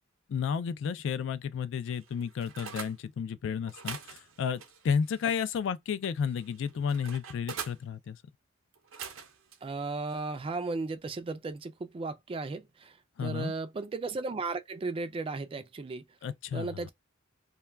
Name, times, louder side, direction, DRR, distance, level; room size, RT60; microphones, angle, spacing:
voice 1, 0.3-8.2 13.2-13.5 16.2-16.7, left 7 dB, 65° left, 0.3 m, -32 dB
sound 1, 1.9-3.0 3.6-5.6 6.0-7.8 8.7-9.6 10.1-10.3, right 6 dB, 85° right, 0.6 m, -44 dB
voice 2, 9.6-16.0 16.5-16.9, right 3 dB, 25° right, 0.3 m, -35 dB
2.2 x 2.2 x 3.2 m
head